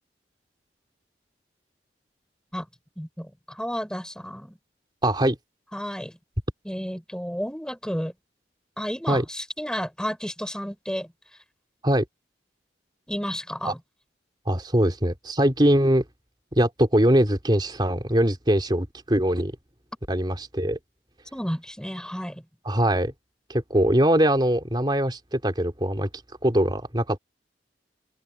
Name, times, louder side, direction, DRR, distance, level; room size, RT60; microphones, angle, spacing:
voice 1, 3.0-4.6 5.7-6.2 6.7-8.1 8.8-11.1 13.1-13.8 21.3-22.4, equal, 5° left, 5.3 m, -32 dB
voice 2, 5.0-5.4 9.1-9.2 11.8-12.0 13.6-13.7 14.5-16.0 16.5-19.5 20.1-20.8 22.6-23.1 23.5-26.1 26.4-27.2, right 1 dB, 25° right, 3.5 m, -22 dB
open air
head